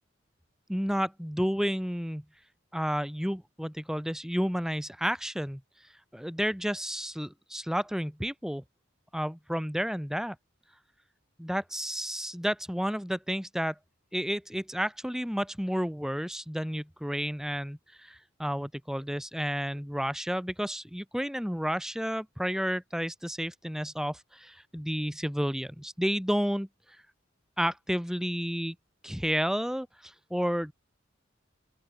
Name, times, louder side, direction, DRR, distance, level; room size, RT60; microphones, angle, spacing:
voice 1, 0.7-2.2 2.7-5.6 6.1-8.6 9.1-10.3 11.4-13.7 14.1-26.7 27.6-28.7 29.0-30.7, equal, 5° right, 3.5 m, -31 dB
open air
head